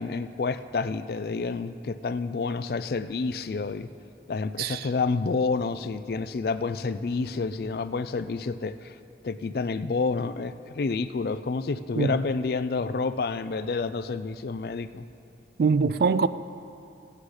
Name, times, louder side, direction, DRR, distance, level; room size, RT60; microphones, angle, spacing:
voice 1, 0.0-3.9 4.3-8.9 9.2-15.0, left 4 dB, 55° left, 0.4 m, -29 dB
voice 2, 4.6-4.9 12.0-12.2 15.6-16.3, right 5 dB, 55° right, 0.3 m, -23 dB
16.0 x 8.5 x 4.9 m
head